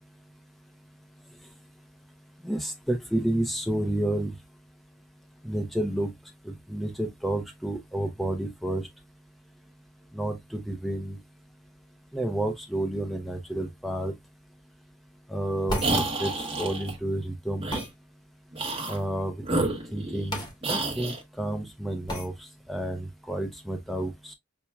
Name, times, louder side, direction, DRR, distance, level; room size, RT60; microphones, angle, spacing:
voice 1, 2.4-4.3 5.4-6.1 6.4-8.9 10.1-11.2 12.1-14.1 15.3-17.7 18.9-24.3, right 1 dB, ahead, 0.5 m, -30 dB
sound 1, 15.7-16.0 17.7-17.9 20.3-20.5 20.9-21.0 22.1-22.3, equal, 20° left, 1.0 m, -32 dB
sound 2, 15.8-17.0 17.6-17.9 18.5-19.0 19.4-20.3 20.6-21.2, right 2 dB, 30° right, 0.8 m, -29 dB
5.8 x 2.1 x 2.2 m
head